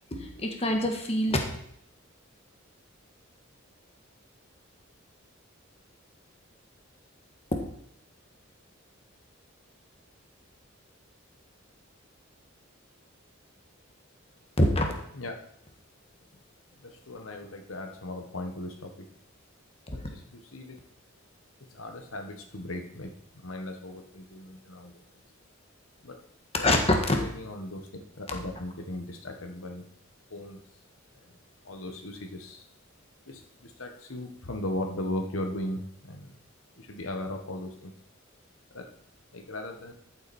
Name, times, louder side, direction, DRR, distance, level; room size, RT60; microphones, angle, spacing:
voice 1, 0.1-1.4 14.6-14.9 19.9-20.0 26.6-27.2 28.3-28.4, left 1 dB, 30° left, 3 dB, 1.7 m, -25 dB
voice 2, 16.8-19.1 19.9-20.8 21.7-24.9 26.0-26.2 26.5-27.9 28.1-29.9 30.3-30.6 31.3-31.4 31.6-32.6 33.3-36.4 36.8-37.9 38.7-38.9 39.3-39.9, left 1 dB, 85° left, 4 dB, 1.6 m, -38 dB
13.5 x 8.0 x 4.4 m, 0.69 s
head